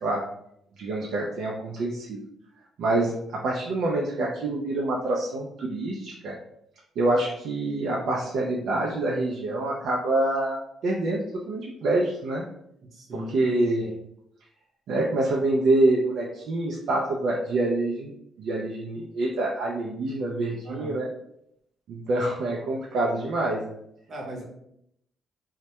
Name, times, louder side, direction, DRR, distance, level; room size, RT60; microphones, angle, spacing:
voice 1, 0.8-2.2 2.8-6.4 7.0-12.5 13.1-14.0 14.9-18.1 18.4-21.1 21.9-23.8, right 2 dB, 75° right, -3 dB, 0.4 m, -26 dB
voice 2, 12.8-13.5 20.6-21.0 24.1-24.4, equal, 50° right, -1 dB, 0.7 m, -38 dB
2.1 x 2.1 x 2.7 m, 0.74 s
cardioid pair, 90°, 0 cm